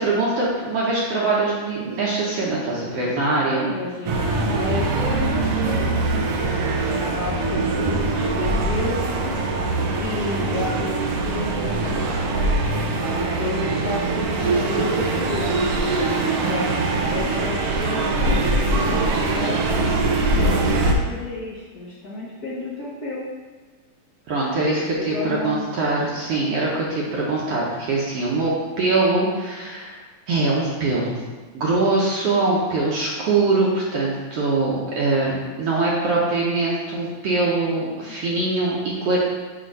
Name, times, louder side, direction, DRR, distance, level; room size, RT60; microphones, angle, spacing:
voice 1, 0.0-3.6 24.3-28.5 28.8-30.0 30.3-31.2 31.5-39.2, right 3 dB, 60° right, -5 dB, 1.7 m, -22 dB
voice 2, 3.5-5.9 6.4-9.4 9.9-15.5 15.9-19.9 20.3-23.3 24.6-25.7 38.1-38.2, left 2 dB, 65° left, -6 dB, 0.9 m, -31 dB
sound 1, 4.1-20.9, right 2 dB, 80° right, 1.3 m, -22 dB
7.8 x 3.1 x 5.5 m, 1.4 s
omnidirectional pair, 3.5 m